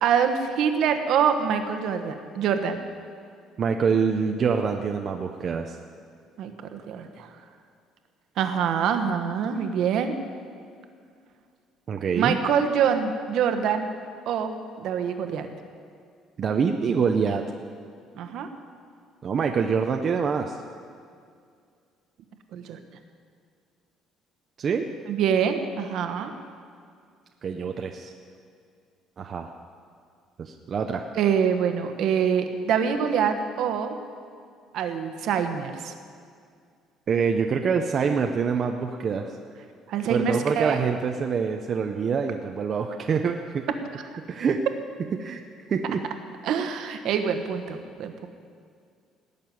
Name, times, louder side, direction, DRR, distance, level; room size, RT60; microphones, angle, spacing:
voice 1, 0.0-2.8 6.4-7.3 8.4-10.2 12.2-13.9 14.3-15.5 18.1-18.5 22.5-22.8 25.1-26.3 31.1-34.0 34.7-35.9 39.9-40.9 44.1-44.2 46.4-48.3, right 7 dB, 60° right, 7 dB, 1.2 m, -25 dB
voice 2, 3.6-5.8 11.9-12.4 16.4-17.4 19.2-20.6 24.6-24.9 27.4-28.1 29.2-29.5 30.4-31.1 37.1-39.3 40.1-43.7 44.3-44.6 45.2-45.4 45.7-46.0, right 6 dB, 35° right, 4 dB, 0.6 m, -25 dB
18.0 x 6.7 x 9.3 m, 2.3 s
cardioid pair, 165°, 0 cm